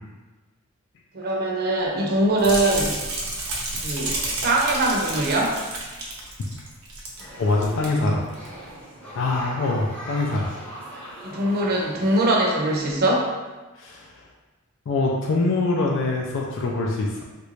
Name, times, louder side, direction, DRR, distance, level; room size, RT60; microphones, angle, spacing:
voice 1, 1.1-3.0 3.8-5.6 11.2-13.3, right 1 dB, 45° right, -2 dB, 0.6 m, -22 dB
sound 1, 2.4-7.3 7.5-7.9 8.3-8.5, right 2 dB, 90° right, 0.8 m, -30 dB
sound 2, 7.2-12.8, equal, 5° left, 0.7 m, -40 dB
voice 2, 7.4-8.2 9.2-10.5 13.8-14.1 14.9-17.2, left 2 dB, 60° left, -1 dB, 0.4 m, -24 dB
3.1 x 2.5 x 3.1 m, 1.2 s
head